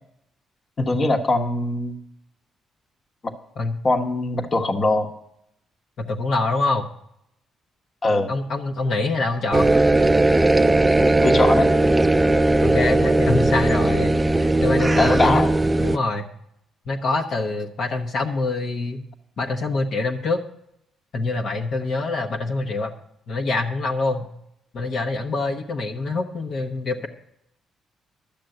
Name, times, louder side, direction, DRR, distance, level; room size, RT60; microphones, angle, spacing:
voice 1, 0.8-2.0 3.8-5.1 8.0-8.3 11.2-11.7 15.0-15.5, left 2 dB, 40° left, 5 dB, 1.2 m, -21 dB
voice 2, 6.0-6.9 8.3-9.7 12.6-15.4 15.8-16.3 16.9-19.0 19.4-20.4 21.1-22.9 23.3-24.3 24.7-27.1, left 3 dB, 60° left, 2 dB, 1.1 m, -25 dB
sound 1, 9.5-16.0, right 2 dB, 15° right, 0.4 m, -18 dB
12.0 x 6.8 x 7.8 m, 0.75 s
cardioid pair, 90°, 0 cm